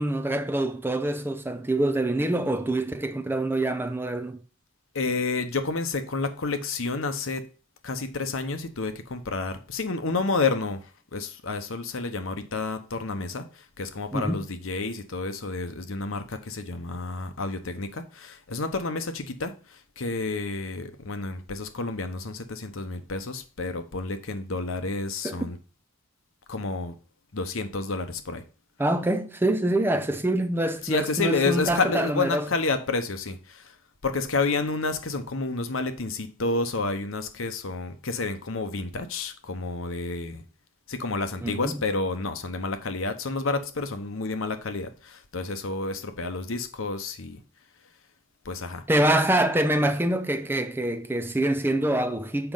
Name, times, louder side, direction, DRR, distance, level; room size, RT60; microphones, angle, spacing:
voice 1, 0.0-4.4 14.1-14.5 25.2-25.4 28.8-32.5 41.4-41.8 48.9-52.5, right 1 dB, 10° right, 0.5 m, -25 dB
voice 2, 4.9-7.5 7.8-25.6 26.5-26.9 27.3-28.4 30.8-33.7 34.0-40.4 40.9-47.4 48.4-48.8, left 3 dB, 75° left, 0.9 m, -30 dB
6.9 x 5.3 x 3.9 m
head